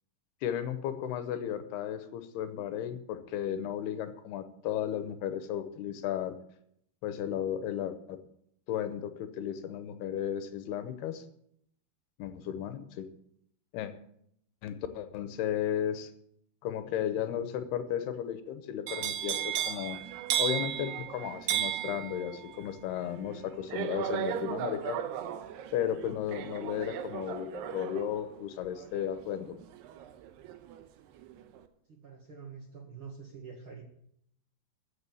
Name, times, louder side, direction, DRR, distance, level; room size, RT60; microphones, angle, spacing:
voice 1, 0.4-6.4 7.0-8.2 8.7-11.2 12.2-13.1 13.7-13.9 14.6-16.1 16.6-20.0 20.4-25.0 25.7-29.6, left 10 dB, 75° left, 10 dB, 2.8 m, -34 dB
sound 1, 18.9-30.8 31.2-31.6, right 11 dB, 80° right, 2.9 m, -35 dB
voice 2, 31.9-33.8, right 5 dB, 45° right, 0 dB, 1.9 m, -46 dB
15.0 x 6.9 x 8.3 m, 0.71 s
omnidirectional pair, 4.8 m